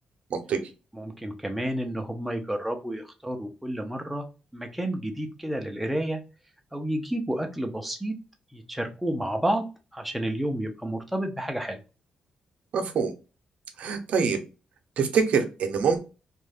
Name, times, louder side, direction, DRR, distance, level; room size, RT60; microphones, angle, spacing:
voice 1, 0.9-4.2 4.5-6.2 6.7-8.2 8.5-9.6 9.9-11.8, right 1 dB, 5° right, 3 dB, 0.5 m, -30 dB
voice 2, 12.7-13.1 13.8-14.4 15.0-16.0, right 6 dB, 70° right, 5 dB, 0.6 m, -24 dB
2.5 x 2.3 x 3.3 m, 0.31 s
cardioid pair, 130°, 2 cm